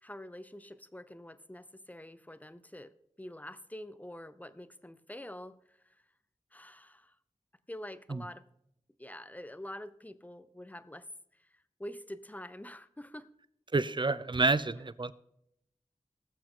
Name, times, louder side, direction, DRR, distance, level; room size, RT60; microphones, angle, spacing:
voice 1, 0.0-2.9 3.2-5.6 6.5-7.1 7.7-8.4 9.0-11.1 11.8-13.3, left 1 dB, 10° left, 14 dB, 0.8 m, -46 dB
voice 2, 13.7-15.1, right 3 dB, 40° right, 16 dB, 0.7 m, -28 dB
19.0 x 7.5 x 3.8 m, 0.77 s
wide cardioid pair, 60°, 13 cm